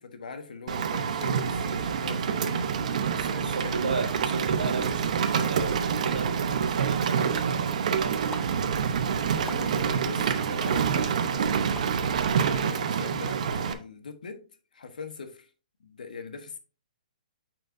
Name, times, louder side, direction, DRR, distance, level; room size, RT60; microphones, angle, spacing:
voice 1, 0.0-2.7 3.1-3.8 8.8-14.4 14.7-15.5 15.8-16.6, left 4 dB, 75° left, 1.2 m, -42 dB
Rain, 0.7-13.7, right 7 dB, 60° right, 0.8 m, -27 dB
voice 2, 3.2-8.5, right 4 dB, 85° right, 1.7 m, -35 dB
sound 1, 8.3-8.4 9.5-9.6 10.6-10.7 11.7-11.9, left 3 dB, 5° left, 0.5 m, -40 dB
9.0 x 4.4 x 2.6 m
hypercardioid pair, 145°, 4 cm